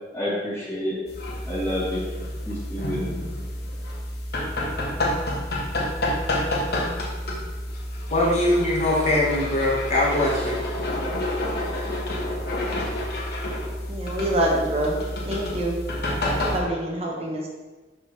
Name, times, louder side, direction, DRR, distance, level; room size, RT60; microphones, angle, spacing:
voice 1, 0.1-1.0 1.5-2.0 2.5-3.2, equal, 15° left, -8 dB, 2.0 m, -28 dB
sound 1, 1.1-16.6, left 1 dB, 55° left, 1.3 m, -29 dB
voice 2, 8.1-10.6, left 1 dB, 35° left, -4 dB, 1.3 m, -22 dB
voice 3, 13.9-14.9 15.3-15.7 16.3-17.5, right 1 dB, 35° right, -2 dB, 0.9 m, -26 dB
11.0 x 3.7 x 3.1 m, 1.2 s
head